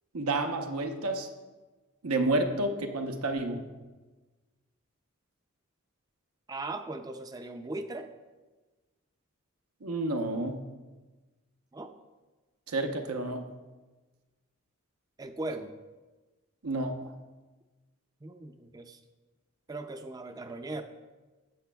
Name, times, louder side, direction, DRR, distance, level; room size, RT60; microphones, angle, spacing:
voice 1, 0.1-1.3 2.0-3.6 9.8-10.7 12.7-13.5 16.6-17.1, right 2 dB, 85° right, 5 dB, 0.9 m, -30 dB
voice 2, 6.5-8.1 11.7-11.9 15.2-15.7 18.2-19.0 19.7-20.8, right 2 dB, 15° right, 8 dB, 0.4 m, -38 dB
17.0 x 6.0 x 2.3 m, 1.2 s
head